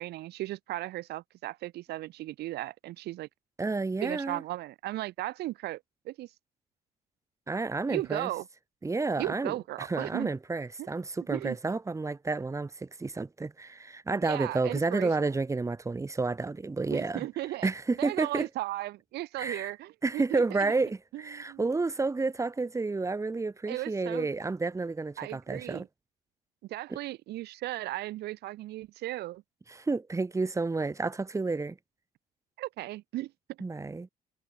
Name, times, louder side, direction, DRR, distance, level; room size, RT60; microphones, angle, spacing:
voice 1, 0.0-3.3 4.0-6.3 7.9-8.5 9.2-10.3 10.8-10.9 11.3-11.6 14.2-15.1 16.9-17.7 18.0-20.7 21.1-21.6 23.7-24.3 25.2-25.9 26.6-29.4 32.6-33.3, right 16 dB, 80° right, 2.5 m, -36 dB
voice 2, 3.6-4.4 7.5-8.3 8.8-17.2 17.6-18.5 19.4-19.7 20.0-25.8 29.7-31.8 33.6-34.1, right 3 dB, 20° right, 3.0 m, -30 dB
cardioid pair, 110°, 17 cm